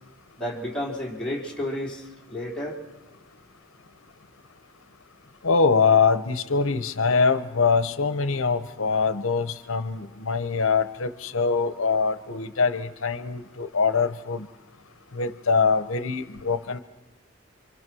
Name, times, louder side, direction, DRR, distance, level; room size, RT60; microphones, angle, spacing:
voice 1, 0.4-2.8, left 1 dB, 5° left, -3 dB, 4.0 m, -31 dB
voice 2, 5.4-14.5 15.1-16.8, left 5 dB, 75° left, 12 dB, 1.0 m, -23 dB
28.5 x 25.0 x 6.2 m, 1.0 s
head